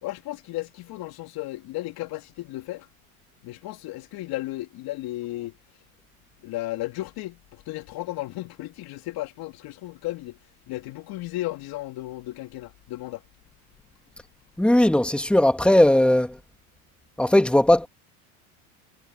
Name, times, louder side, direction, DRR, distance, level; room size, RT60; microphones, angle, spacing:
voice 1, 0.0-2.9 3.4-5.6 6.4-10.4 10.7-13.2, left 17 dB, 60° left, 3.5 m, -34 dB
voice 2, 14.6-16.4 17.2-17.9, left 1 dB, ahead, 2.6 m, -18 dB
hypercardioid pair, 90°, 42 cm